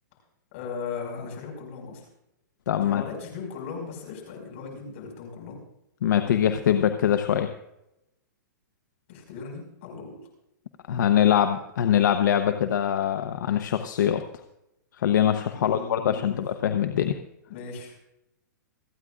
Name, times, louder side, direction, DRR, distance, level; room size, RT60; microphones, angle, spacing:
voice 1, 0.5-2.1 2.8-5.6 9.1-10.2 15.5-16.4 17.5-18.0, left 5 dB, 45° left, 0 dB, 5.5 m, -38 dB
voice 2, 2.7-3.0 6.0-7.5 10.9-14.2 15.0-17.2, left 9 dB, 70° left, 7 dB, 0.9 m, -23 dB
28.0 x 9.6 x 2.5 m, 0.86 s
hypercardioid pair, 165°, 10 cm